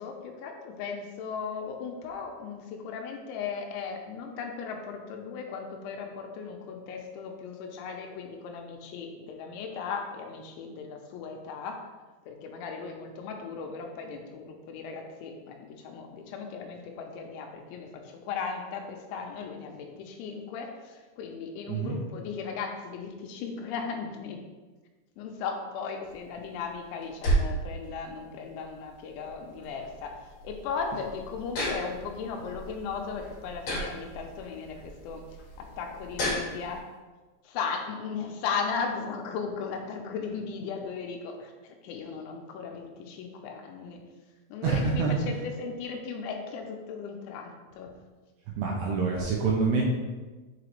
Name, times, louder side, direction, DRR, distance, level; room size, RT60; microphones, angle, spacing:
voice 1, 0.0-11.8 12.3-24.4 25.2-35.3 35.6-36.8 37.4-44.0 44.5-47.9, left 5 dB, 85° left, 3 dB, 2.9 m, -37 dB
voice 2, 21.7-22.0 44.6-45.3 48.6-49.8, right 4 dB, 80° right, -2 dB, 2.5 m, -26 dB
sound 1, 26.0-36.8, right 1 dB, 45° left, 2.6 m, -35 dB
6.8 x 4.9 x 3.1 m, 1.3 s
omnidirectional pair, 5.4 m